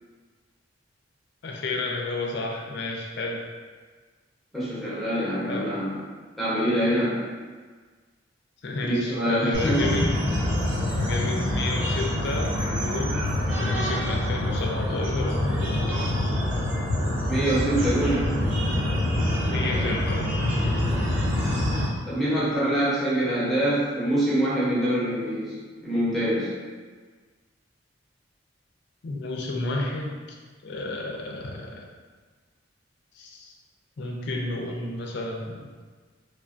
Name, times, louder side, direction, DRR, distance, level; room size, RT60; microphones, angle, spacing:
voice 1, 1.4-3.5 5.5-5.7 8.6-10.1 11.0-13.3 13.6-16.1 19.5-20.3 29.0-30.4 30.6-31.8 33.1-33.5 34.0-35.6, left 2 dB, 60° left, 0 dB, 0.4 m, -31 dB
voice 2, 4.5-6.0 6.4-7.2 8.8-10.1 17.3-18.4 19.8-19.9 22.1-26.5, right 1 dB, ahead, -11 dB, 0.8 m, -25 dB
sound 1, 9.5-21.9, left 1 dB, 75° right, 1.0 m, -25 dB
3.2 x 2.2 x 2.5 m, 1.5 s
head